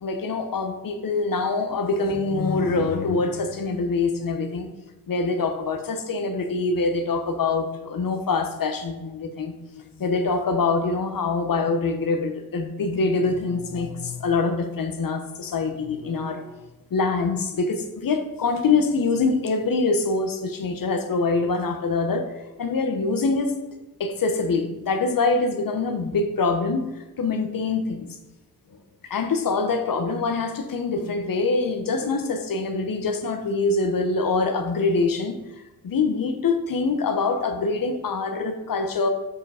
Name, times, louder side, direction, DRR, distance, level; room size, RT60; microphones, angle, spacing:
voice 1, 0.0-4.7 5.1-16.6 16.9-22.3 22.6-23.6 24.0-28.2 29.0-35.4 35.8-39.1, left 3 dB, 65° left, 7 dB, 1.0 m, -24 dB
7.0 x 4.8 x 5.1 m, 1.0 s
cardioid pair, 85°, 37 cm